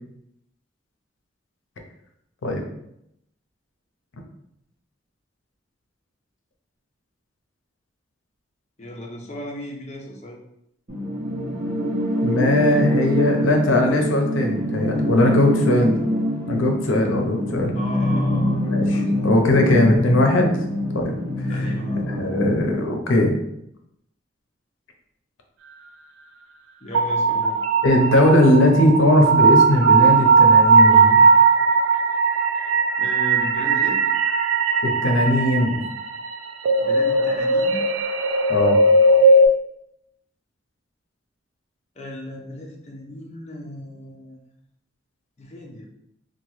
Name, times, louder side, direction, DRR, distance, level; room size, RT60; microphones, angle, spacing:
voice 1, 8.8-10.4 17.7-19.2 21.5-22.1 26.8-27.6 33.0-34.0 36.8-37.9 42.0-44.5 45.4-45.9, equal, 35° left, -1 dB, 0.6 m, -35 dB
sound 1, 10.9-22.9, equal, 40° right, 0.8 m, -24 dB
voice 2, 12.2-15.9 16.5-17.7 18.7-20.6 20.9-21.1 21.4-21.5 22.1-23.4 27.8-31.2 35.0-35.8 38.5-38.8, left 1 dB, 85° left, 3 dB, 0.6 m, -19 dB
sound 2, 26.9-39.5, right 3 dB, 90° right, 0.3 m, -17 dB
2.9 x 2.2 x 3.0 m, 0.78 s
head